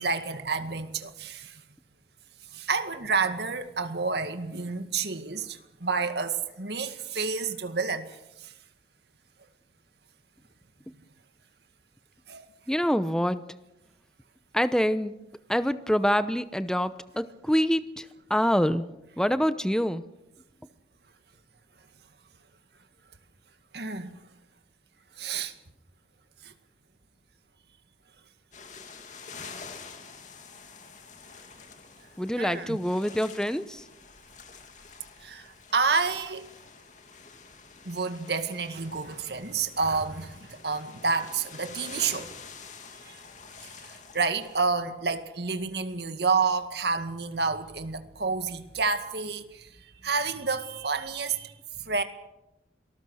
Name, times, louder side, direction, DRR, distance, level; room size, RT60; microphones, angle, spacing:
voice 1, 0.0-1.6 2.5-8.5 12.3-12.5 23.7-24.1 25.2-25.5 26.4-26.5 32.4-32.8 35.2-36.5 37.9-42.3 42.9-43.2 43.6-49.7 50.0-51.5 51.8-52.0, right 4 dB, 65° right, 2.0 m, -29 dB
voice 2, 12.7-13.4 14.5-15.1 15.5-18.9 19.2-20.0 32.2-33.8, equal, 5° left, 0.8 m, -26 dB
sound 1, 28.5-44.7, left 5 dB, 40° left, 2.6 m, -47 dB
27.0 x 19.0 x 6.4 m
head